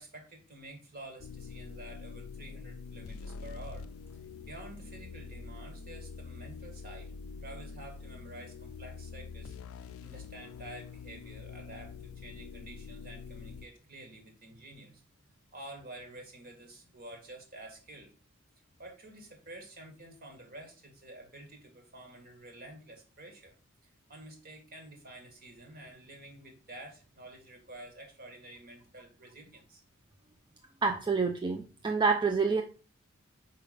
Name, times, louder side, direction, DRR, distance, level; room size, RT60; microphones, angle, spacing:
voice 1, 0.0-3.9 4.5-7.1 7.4-15.0 15.5-18.1 18.8-23.5 23.8-29.8, right 1 dB, 45° right, 4 dB, 1.7 m, -49 dB
sound 1, 1.2-13.7, left 5 dB, 80° left, 0.4 m, -45 dB
voice 2, 30.8-32.6, right 4 dB, 20° right, 4 dB, 0.4 m, -27 dB
4.9 x 4.6 x 5.1 m, 0.37 s
head